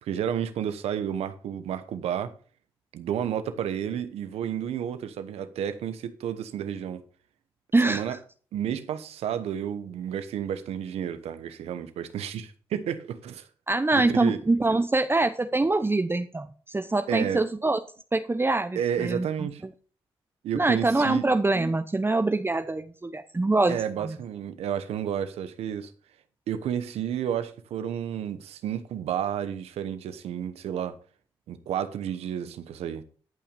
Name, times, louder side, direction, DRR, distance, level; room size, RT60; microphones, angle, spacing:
voice 1, 0.0-2.3 2.9-7.0 7.8-8.2 8.5-13.5 13.9-14.4 17.1-17.4 18.8-19.6 20.4-21.3 23.7-25.9 26.5-31.0 31.5-33.0, right 9 dB, 85° right, 1.0 m, -31 dB
voice 2, 7.7-8.0 13.7-17.8 18.1-19.5 20.5-24.2, right 2 dB, 20° right, 0.9 m, -24 dB
13.0 x 5.8 x 5.5 m
supercardioid pair, 50°, 10 cm